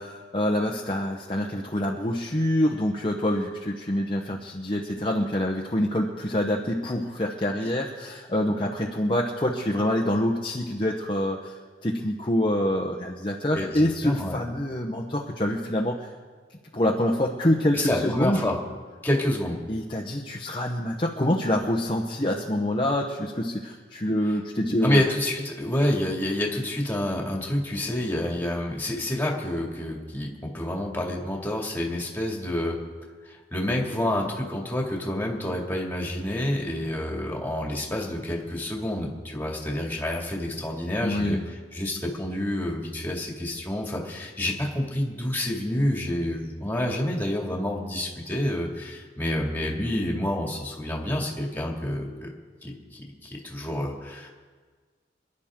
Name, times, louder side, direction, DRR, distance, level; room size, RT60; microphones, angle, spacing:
voice 1, 0.0-16.1 16.7-18.5 19.7-25.0 41.0-41.4, left 1 dB, 30° left, -1 dB, 1.0 m, -26 dB
voice 2, 13.5-14.4 17.7-18.6 19.0-19.6 24.8-32.8 33.2-41.4 41.7-52.3 52.6-54.3, left 1 dB, 10° left, -1 dB, 2.3 m, -28 dB
27.0 x 11.0 x 3.7 m, 1.5 s
head